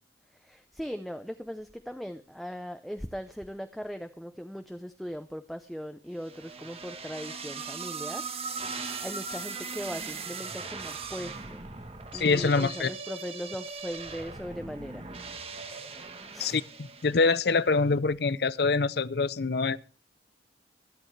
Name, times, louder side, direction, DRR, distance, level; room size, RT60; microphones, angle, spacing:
voice 1, 0.4-8.2 8.7-11.6 12.1-15.0 16.3-16.6, equal, ahead, 0.6 m, -39 dB
sound 1, 6.2-17.5, right 4 dB, 30° right, 1.3 m, -39 dB
voice 2, 12.1-12.9 16.4-16.6 17.0-19.8, left 4 dB, 60° left, 0.6 m, -25 dB
24.0 x 8.9 x 3.2 m
head